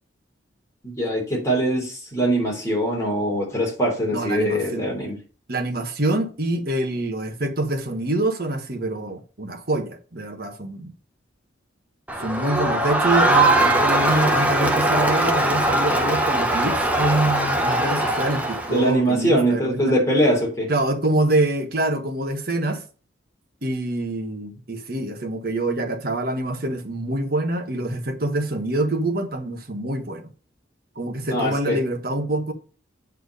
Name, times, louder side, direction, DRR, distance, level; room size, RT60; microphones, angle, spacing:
voice 1, 0.8-5.2 18.7-20.7 31.3-31.8, right 1 dB, 15° left, 3.4 m, -22 dB
voice 2, 4.1-4.8 5.5-10.9 12.2-20.0 20.7-22.8 23.6-30.3 30.9-32.5, right 2 dB, 50° right, 1.3 m, -25 dB
Crowd, 12.1-18.9, right 1 dB, 10° right, 0.9 m, -21 dB
8.3 x 4.5 x 5.5 m
head